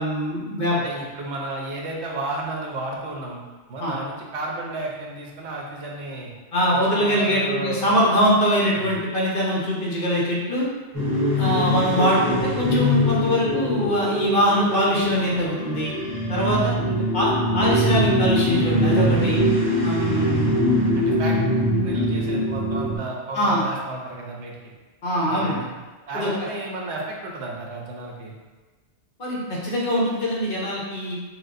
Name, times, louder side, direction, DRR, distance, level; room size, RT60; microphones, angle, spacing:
voice 1, 0.0-0.9 3.8-3.9 6.5-10.7 11.4-15.9 16.3-16.7 17.1-19.4 19.8-20.6 23.3-23.6 25.0-25.6 26.1-26.3 29.2-31.1, equal, 55° left, -5 dB, 1.0 m, -22 dB
voice 2, 0.7-6.3 6.7-8.2 8.8-9.0 16.9-17.2 20.9-21.4 21.8-24.6 25.3-25.6 26.1-28.4, right 2 dB, 90° right, -1 dB, 1.0 m, -33 dB
sound 1, 10.9-23.0, equal, 20° right, 0.7 m, -23 dB
6.0 x 2.1 x 2.6 m, 1.3 s
omnidirectional pair, 1.1 m